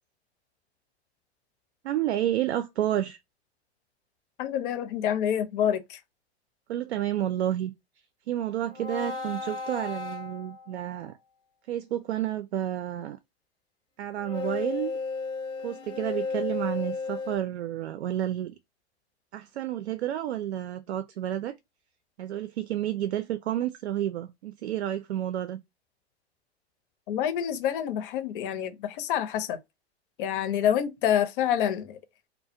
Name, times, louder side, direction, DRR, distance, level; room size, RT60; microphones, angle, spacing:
voice 1, 1.8-3.2 6.7-7.7 8.3-11.2 11.7-13.2 14.0-14.9 15.6-18.5 19.3-21.5 22.2-25.6, right 12 dB, 75° right, 0.5 m, -30 dB
voice 2, 4.4-6.0 27.1-29.6 30.2-32.0, left 9 dB, 50° left, 0.7 m, -27 dB
sound 1, 8.7-10.9 14.2-17.4, left 4 dB, 15° left, 0.4 m, -34 dB
2.3 x 2.1 x 2.7 m
hypercardioid pair, 105°, 33 cm